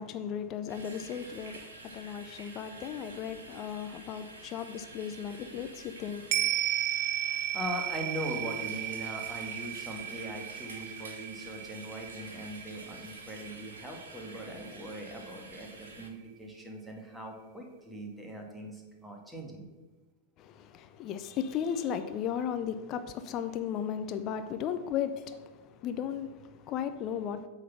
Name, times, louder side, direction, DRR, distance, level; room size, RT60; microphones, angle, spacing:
voice 1, 0.0-6.4 20.4-27.5, left 8 dB, 35° left, 0.5 m, -36 dB
sound 1, 0.7-16.1, right 2 dB, 70° right, 1.4 m, -49 dB
sound 2, 6.3-14.9 15.2-15.3, right 12 dB, 45° right, 0.3 m, -35 dB
voice 2, 7.5-19.6, equal, 5° right, 1.5 m, -41 dB
8.2 x 3.9 x 5.9 m
figure-of-eight pair, 90°, 0 cm